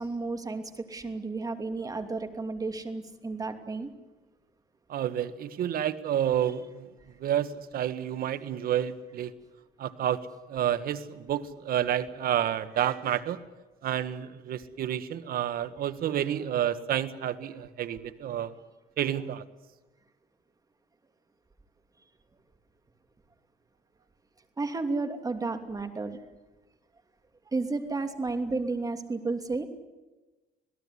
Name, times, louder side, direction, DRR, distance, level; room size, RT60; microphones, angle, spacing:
voice 1, 0.0-3.9 24.6-26.2 27.5-29.7, right 3 dB, 20° right, 7 dB, 2.8 m, -32 dB
voice 2, 4.9-6.9 7.2-9.3 9.8-10.2 10.5-13.4 13.8-18.5 19.0-19.4, right 10 dB, 60° right, 11 dB, 1.6 m, -29 dB
27.0 x 17.5 x 9.9 m, 1.2 s
cardioid pair, 110°, 17 cm